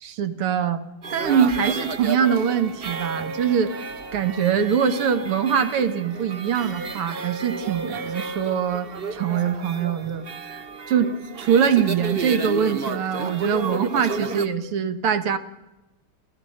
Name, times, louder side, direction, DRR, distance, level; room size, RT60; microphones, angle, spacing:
voice 1, 0.0-0.8 1.1-10.2 10.9-15.4, right 7 dB, 90° right, 10 dB, 2.4 m, -23 dB
sound 1, 1.0-14.5, right 4 dB, 45° right, 0.8 m, -32 dB
29.5 x 14.5 x 6.5 m, 1.0 s
omnidirectional pair, 2.4 m